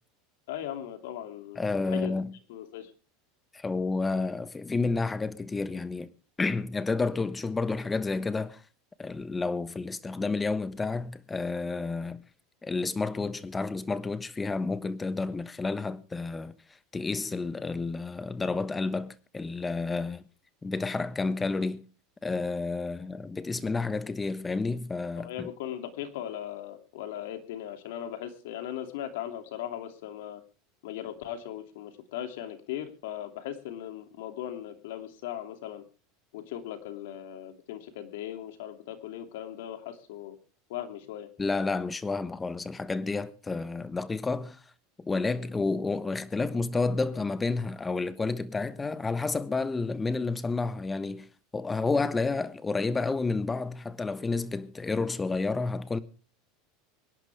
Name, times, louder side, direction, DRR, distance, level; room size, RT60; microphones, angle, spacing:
voice 1, 0.5-2.1 2.5-2.9 25.2-30.4 30.8-35.8 36.3-40.4 40.7-41.3, left 11 dB, 75° left, 2.6 m, -38 dB
voice 2, 1.6-2.3 3.5-6.1 6.4-8.6 9.0-12.2 12.6-16.5 16.9-20.2 20.6-21.9 22.2-25.5 41.4-44.6 45.0-51.3 51.5-56.0, left 3 dB, 15° left, 1.2 m, -30 dB
24.0 x 10.5 x 3.5 m
supercardioid pair, 110°, 0 cm